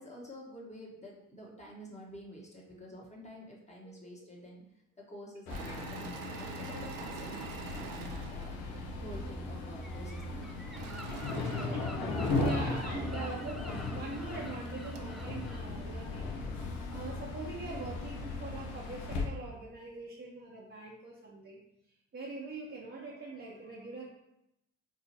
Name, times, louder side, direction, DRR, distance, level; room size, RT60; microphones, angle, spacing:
voice 1, 0.0-4.6 5.0-11.0 11.5-12.2 12.6-12.7 13.1-13.3, equal, 20° left, -4 dB, 1.1 m, -48 dB
voice 2, 3.8-4.5 11.0-11.1 12.4-21.6 22.1-24.1, right 3 dB, 35° right, -4 dB, 0.9 m, -44 dB
sound 1, 5.5-19.2, left 3 dB, 80° left, 0.7 m, -37 dB
Engine / Mechanisms, 5.5-9.3 10.7-13.6 14.3-14.4 14.6-15.2, right 6 dB, 70° right, 0.6 m, -47 dB
Gull seagull, 9.8-15.6, equal, ahead, 0.3 m, -49 dB
4.7 x 2.4 x 2.8 m, 0.82 s
hypercardioid pair, 50°, 37 cm